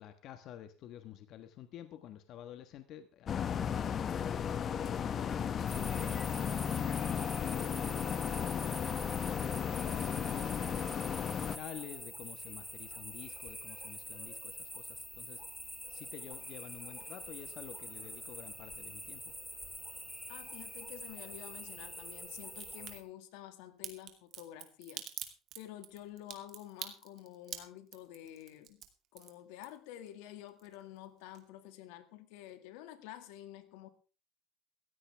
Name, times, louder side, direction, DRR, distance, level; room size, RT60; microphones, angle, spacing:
voice 1, 0.0-3.9 4.6-6.6 7.3-8.6 9.6-15.4 15.9-19.3, left 11 dB, 55° left, 1.3 m, -49 dB
sound 1, 3.3-11.6, left 7 dB, 35° left, 1.1 m, -34 dB
sound 2, 5.7-23.0, equal, ahead, 2.3 m, -46 dB
voice 2, 20.3-25.1 25.6-28.8 29.1-33.9, left 12 dB, 85° left, 2.0 m, -49 dB
Crack, 22.5-22.9 23.8-30.1 30.4-31.1 31.3-31.4, right 11 dB, 55° right, 2.5 m, -45 dB
16.5 x 14.5 x 3.4 m
cardioid pair, 120°, 0 cm